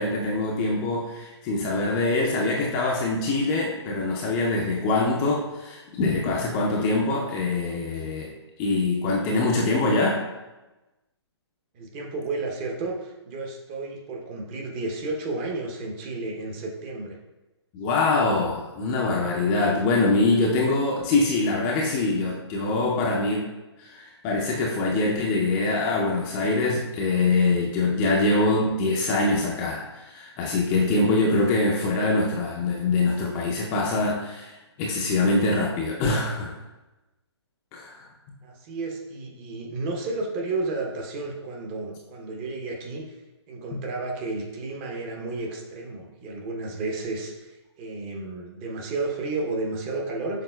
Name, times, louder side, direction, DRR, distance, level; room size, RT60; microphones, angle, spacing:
voice 1, 0.0-8.3 8.6-10.2 17.7-23.5 23.8-36.5 37.7-38.0, left 2 dB, 20° left, -3 dB, 0.4 m, -24 dB
voice 2, 11.7-17.2 38.4-43.2 43.5-50.4, right 3 dB, 25° right, 1 dB, 0.7 m, -32 dB
6.7 x 3.5 x 2.2 m, 1.1 s
hypercardioid pair, 140°, 15 cm